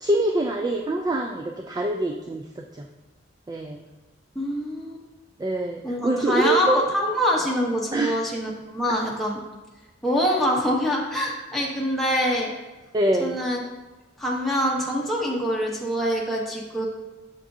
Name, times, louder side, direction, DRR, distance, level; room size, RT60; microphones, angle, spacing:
voice 1, 0.0-2.9 3.5-3.8 5.4-6.8 7.9-8.2 12.9-13.4, right 2 dB, 20° right, 3 dB, 0.3 m, -25 dB
voice 2, 4.3-5.0 5.8-9.4 10.0-12.5 13.2-13.6 14.2-16.9, equal, ahead, -4 dB, 0.9 m, -25 dB
7.4 x 6.0 x 2.7 m, 1.2 s
head